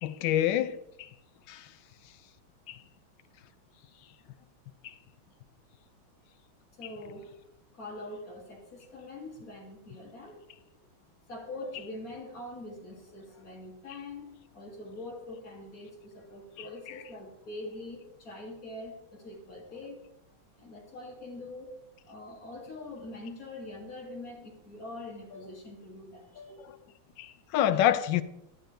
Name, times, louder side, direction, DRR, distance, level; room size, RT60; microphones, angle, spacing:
voice 1, 0.0-1.1 1.5-1.6 2.7-2.8 27.2-28.2, left 11 dB, 75° left, 1.2 m, -27 dB
voice 2, 6.8-7.3 7.7-10.9 11.3-20.0 20.5-21.7 22.0-26.6, left 2 dB, 45° left, 2.7 m, -44 dB
11.0 x 10.0 x 3.3 m
omnidirectional pair, 2.2 m